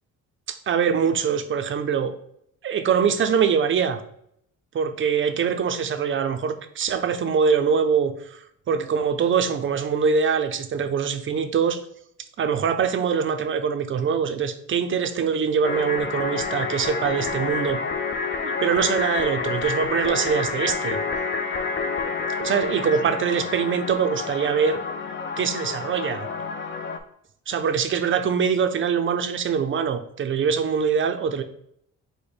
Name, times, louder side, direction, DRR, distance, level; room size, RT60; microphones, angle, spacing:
voice 1, 0.5-2.1 2.6-4.0 4.7-8.4 8.7-11.8 12.4-17.8 18.4-21.0 22.4-24.8 25.4-26.3 27.5-31.4, right 6 dB, 40° right, 9 dB, 0.5 m, -23 dB
sound 1, 15.6-27.0, left 4 dB, 40° left, 0.5 m, -28 dB
5.0 x 2.2 x 4.3 m, 0.72 s
cardioid pair, 120°, 32 cm